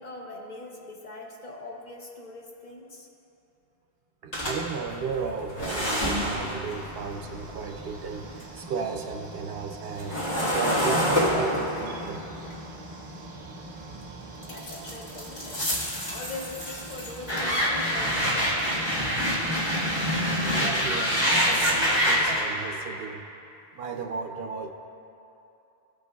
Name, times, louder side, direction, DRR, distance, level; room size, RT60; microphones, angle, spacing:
voice 1, 0.0-3.1 12.5-12.6 14.4-15.6 16.1-18.9, left 2 dB, 50° left, 0 dB, 0.8 m, -41 dB
voice 2, 4.2-12.3 20.0-23.2 23.7-24.7, right 5 dB, 70° right, 4 dB, 0.7 m, -34 dB
sound 1, 4.3-8.6 8.9-13.9 14.4-22.4, equal, 75° left, 1.9 m, -27 dB
sound 2, 6.2-22.0, right 2 dB, 30° right, 0.6 m, -44 dB
15.5 x 5.4 x 2.3 m, 2.9 s
omnidirectional pair, 1.1 m